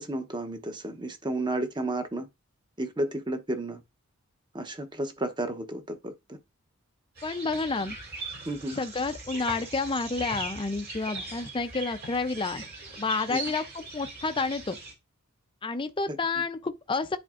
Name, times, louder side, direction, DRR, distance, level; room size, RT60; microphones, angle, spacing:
voice 1, 0.0-2.3 2.8-3.8 4.5-6.1 8.5-8.8 13.3-13.4 16.1-16.2, right 1 dB, 20° right, 0.9 m, -32 dB
voice 2, 7.2-8.0 8.7-12.6 13.0-14.8 15.6-17.2, left 3 dB, 20° left, 0.5 m, -30 dB
sound 1, 7.2-14.9, right 3 dB, 45° right, 2.5 m, -40 dB
10.0 x 4.2 x 2.5 m
head